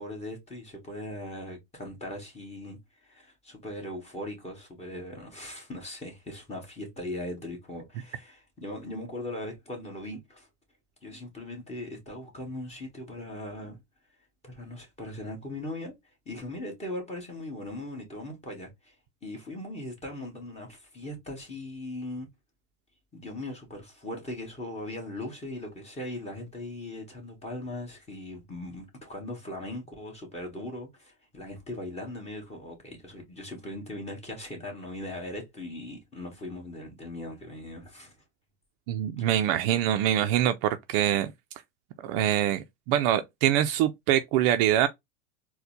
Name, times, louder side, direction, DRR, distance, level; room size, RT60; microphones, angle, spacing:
voice 1, 0.0-10.5 11.0-13.8 14.4-15.9 16.2-18.9 19.2-22.3 23.1-38.2 39.2-39.5, left 1 dB, 15° left, 1.5 m, -39 dB
voice 2, 38.9-41.3 42.0-44.9, right 11 dB, 50° right, 0.4 m, -24 dB
4.2 x 2.2 x 2.6 m
supercardioid pair, 120°, 37 cm